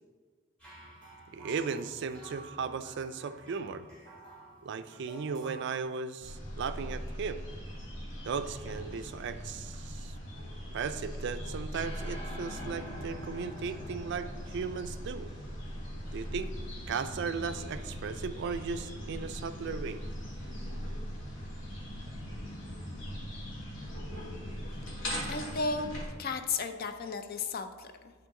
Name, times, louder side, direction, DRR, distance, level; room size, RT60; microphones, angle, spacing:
sound 1, 0.6-5.7, right 2 dB, 5° left, 1.9 m, -51 dB
voice 1, 1.3-3.8 4.6-7.4 8.2-10.2 10.7-15.3 16.1-16.5 16.9-20.0, right 5 dB, 55° right, 11 dB, 0.3 m, -36 dB
sound 2, 6.2-26.1, equal, 60° left, 1.7 m, -40 dB
sound 3, 11.7-16.1, equal, 25° left, 1.3 m, -47 dB
voice 2, 25.3-25.9 26.2-28.3, left 4 dB, 45° left, 8 dB, 0.5 m, -34 dB
11.0 x 3.8 x 3.6 m, 1.5 s
head